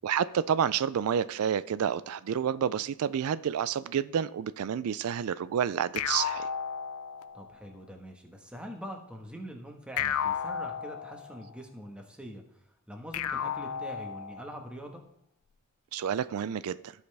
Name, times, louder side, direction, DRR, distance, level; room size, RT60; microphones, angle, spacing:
voice 1, 0.0-6.5 15.9-16.9, right 8 dB, 85° right, 17 dB, 0.4 m, -29 dB
sound 1, 6.0-7.6 10.0-11.6 13.1-14.6, left 8 dB, 85° left, 0.4 m, -33 dB
voice 2, 7.3-12.4 12.9-15.0, equal, 5° right, 2 dB, 1.3 m, -44 dB
15.5 x 5.5 x 3.4 m, 0.74 s
head